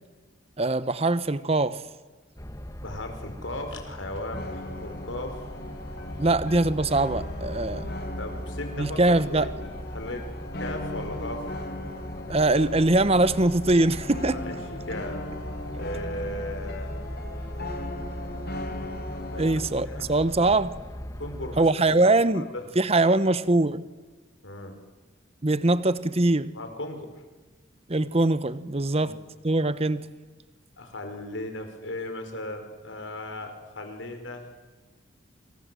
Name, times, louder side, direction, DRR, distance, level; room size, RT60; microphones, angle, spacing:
voice 1, 0.6-1.8 6.2-7.9 8.8-9.5 12.3-14.4 19.4-20.8 21.6-22.5 22.8-23.8 25.4-26.5 27.9-29.2 29.4-30.1, right 2 dB, 30° right, 0.9 m, -22 dB
sound 1, 2.4-21.7, equal, 15° left, 1.4 m, -38 dB
voice 2, 2.8-5.4 8.2-9.0 9.3-9.5 9.9-10.3 10.6-11.4 14.3-15.2 15.7-16.9 19.3-20.1 21.2-22.0 22.3-22.6 24.4-24.7 26.5-27.1 28.8-29.2 30.8-34.5, left 1 dB, 80° left, 5.2 m, -37 dB
sound 2, 4.3-19.8, left 1 dB, 55° left, 3.1 m, -39 dB
29.0 x 26.0 x 7.8 m
head